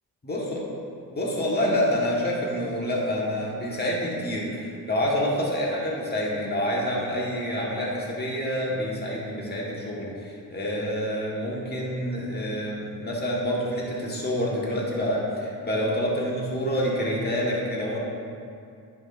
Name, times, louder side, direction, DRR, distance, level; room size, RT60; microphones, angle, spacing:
voice 1, 0.2-0.6 1.1-18.0, equal, 25° left, -4 dB, 1.7 m, -27 dB
10.0 x 6.2 x 2.7 m, 2.5 s
cardioid pair, 80°, 40 cm